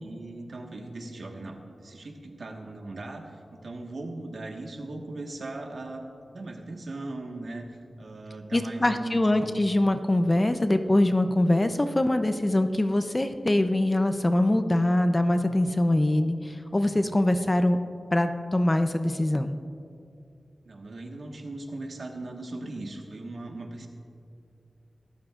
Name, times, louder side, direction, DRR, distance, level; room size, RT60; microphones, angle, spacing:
voice 1, 0.0-6.0 6.3-7.7 8.0-9.5 20.6-23.9, right 2 dB, 60° right, 2 dB, 1.5 m, -39 dB
voice 2, 8.5-17.8 18.1-19.5, left 1 dB, 20° left, 8 dB, 0.6 m, -23 dB
23.5 x 12.5 x 2.5 m, 2.5 s
wide cardioid pair, 100°, 0 cm